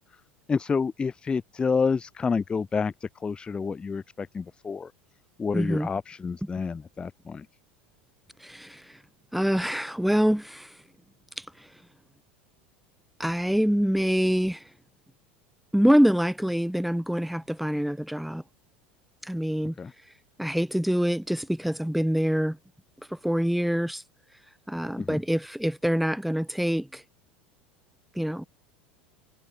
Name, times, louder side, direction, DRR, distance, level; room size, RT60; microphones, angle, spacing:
voice 1, 0.5-4.9 5.4-7.5 19.8-19.9 25.0-25.2, left 5 dB, 20° left, 0.3 m, -29 dB
voice 2, 5.5-5.9 8.4-9.0 9.3-10.7 11.4-11.7 13.2-14.6 15.7-18.4 19.2-19.7 20.4-22.6 23.1-24.0 24.7-27.0 28.1-28.4, equal, ahead, 1.3 m, -25 dB
figure-of-eight pair, 80°, 5 cm